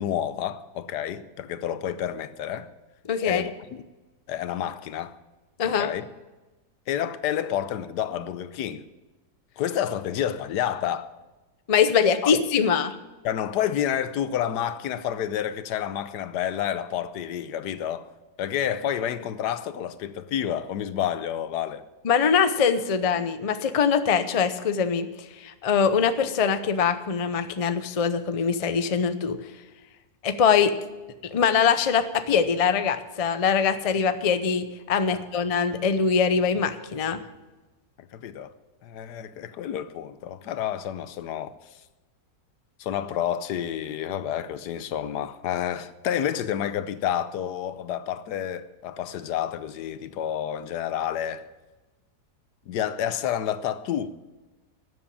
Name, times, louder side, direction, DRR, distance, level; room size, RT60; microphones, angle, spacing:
voice 1, 0.0-2.7 3.3-3.8 4.3-5.2 5.6-6.1 6.9-8.8 9.6-11.1 12.2-12.4 13.2-18.1 18.4-21.8 38.0-38.5 38.8-41.8 42.8-51.5 52.7-54.1, left 10 dB, 90° left, 1.3 m, -29 dB
voice 2, 3.1-3.4 5.6-5.9 11.7-13.0 22.0-25.1 25.4-29.4 30.2-30.7 31.2-37.2, left 6 dB, 45° left, 0.4 m, -23 dB
13.0 x 7.9 x 8.5 m
omnidirectional pair, 1.7 m